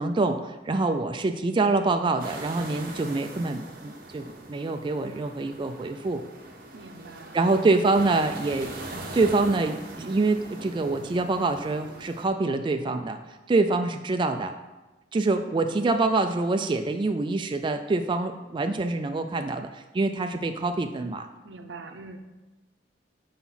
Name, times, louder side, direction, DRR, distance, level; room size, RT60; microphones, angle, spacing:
voice 1, 0.0-6.2 7.3-8.7 9.1-13.2 13.5-14.5 15.1-21.3, right 3 dB, 30° right, 6 dB, 0.3 m, -25 dB
sound 1, 2.2-12.3, right 2 dB, 55° right, 1.0 m, -41 dB
voice 2, 6.7-7.7 21.4-22.2, right 3 dB, 80° right, 7 dB, 0.7 m, -43 dB
5.7 x 4.3 x 5.6 m, 1.1 s
head